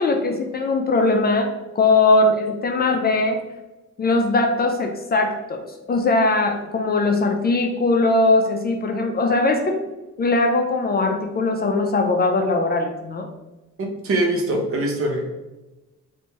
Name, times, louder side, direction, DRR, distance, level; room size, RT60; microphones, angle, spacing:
voice 1, 0.0-3.4 4.0-9.8 10.2-13.3, left 2 dB, 30° left, 4 dB, 0.5 m, -20 dB
voice 2, 13.8-15.3, right 1 dB, 50° right, 1 dB, 0.9 m, -23 dB
3.4 x 2.6 x 3.0 m, 1.1 s
cardioid pair, 90°, 30 cm